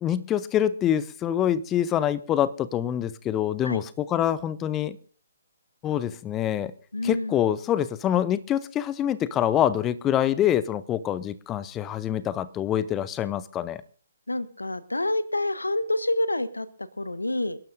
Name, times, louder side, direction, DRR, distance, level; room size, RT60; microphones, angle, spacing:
voice 1, 0.0-5.0 5.8-6.7 7.0-13.8, left 10 dB, 15° left, 0.6 m, -25 dB
voice 2, 6.9-7.4 14.3-17.6, left 1 dB, 80° left, 0.8 m, -28 dB
28.0 x 12.0 x 2.6 m
figure-of-eight pair, 135°, 0 cm